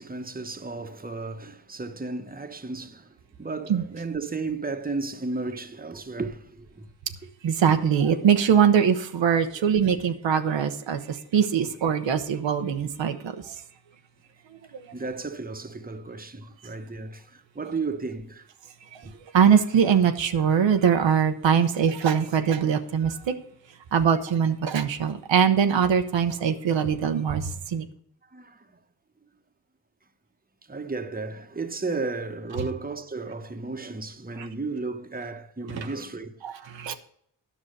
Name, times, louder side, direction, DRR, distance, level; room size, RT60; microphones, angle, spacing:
voice 1, 0.0-3.1 3.4-6.9 9.6-9.7 14.9-18.5 19.0-19.1 28.2-28.7 30.7-36.4 36.9-37.0, right 3 dB, 20° right, 1.1 m, -34 dB
voice 2, 7.4-13.5 14.7-14.8 18.9-19.0 19.3-23.3 23.9-27.9 34.4-34.5 35.7-35.9 36.4-36.9, right 7 dB, 85° right, 0.9 m, -22 dB
10.0 x 6.2 x 6.5 m
cardioid pair, 55°, 44 cm